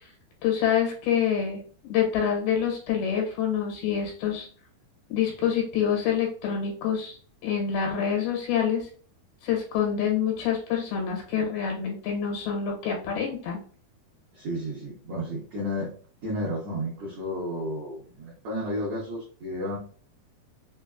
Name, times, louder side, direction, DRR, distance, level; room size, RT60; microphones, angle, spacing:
voice 1, 0.4-1.6 1.9-4.5 5.1-7.2 7.4-8.9 9.4-13.6, left 8 dB, 80° left, 0 dB, 2.7 m, -26 dB
voice 2, 14.3-15.9 16.2-19.8, equal, 65° right, -8 dB, 1.4 m, -32 dB
5.7 x 2.0 x 2.3 m, 0.43 s
omnidirectional pair, 4.3 m